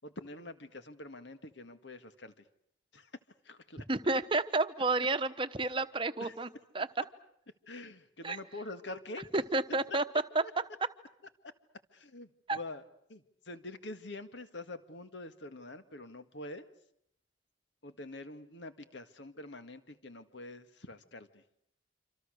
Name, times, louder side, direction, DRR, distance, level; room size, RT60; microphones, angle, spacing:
voice 1, 0.0-2.3 2.9-3.1 3.5-3.8 6.2-6.3 7.7-9.4 11.9-12.8 13.1-16.7 17.8-21.3, left 2 dB, 65° left, 9 dB, 1.8 m, -45 dB
voice 2, 3.9-6.5 6.7-6.9 8.2-8.4 9.3-10.9 12.5-12.6, right 3 dB, 25° right, 10 dB, 1.1 m, -31 dB
27.0 x 26.5 x 6.5 m, 0.73 s
head